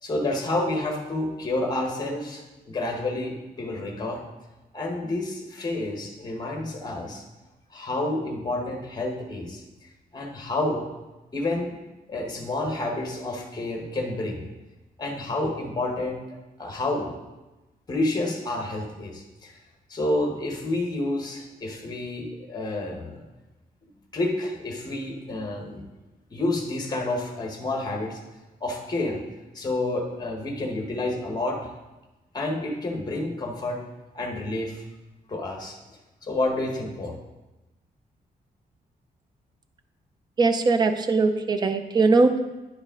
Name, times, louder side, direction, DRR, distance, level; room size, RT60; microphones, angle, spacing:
voice 1, 0.0-4.2 4.7-7.2 7.7-9.6 10.1-10.9 11.3-11.8 12.1-14.4 15.0-17.2 17.9-19.5 19.9-23.2 24.1-25.8 26.3-28.2 28.6-29.2 29.5-31.7 32.3-33.8 34.1-34.8 35.3-35.8 36.2-37.2, left 2 dB, 25° left, 2 dB, 1.2 m, -29 dB
voice 2, 40.4-42.4, right 3 dB, 30° right, 8 dB, 0.5 m, -20 dB
10.0 x 5.2 x 3.7 m, 1.1 s
wide cardioid pair, 160°, 15 cm